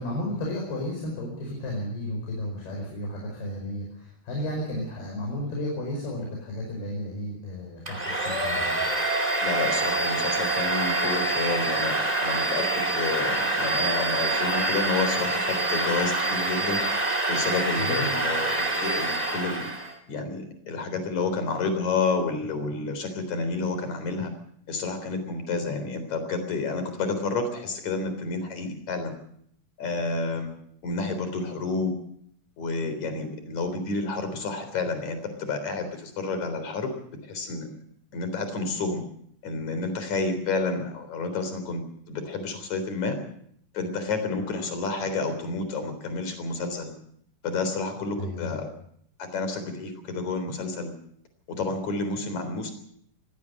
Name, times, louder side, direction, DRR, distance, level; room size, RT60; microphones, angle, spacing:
voice 1, 0.0-8.8 17.8-18.1 48.2-48.6, left 1 dB, 65° left, -1 dB, 7.3 m, -33 dB
Domestic sounds home sounds, 7.9-20.0, right 2 dB, 10° right, 2.0 m, -26 dB
voice 2, 9.4-16.8 17.3-19.7 20.1-24.3 24.7-29.1 29.8-30.5 30.8-31.9 32.6-36.9 37.3-37.8 38.1-39.0 39.4-43.2 43.7-46.9 47.4-48.7 49.2-50.9 51.5-52.7, left 3 dB, 45° left, 9 dB, 4.8 m, -30 dB
23.0 x 17.0 x 6.6 m, 0.66 s
omnidirectional pair, 4.9 m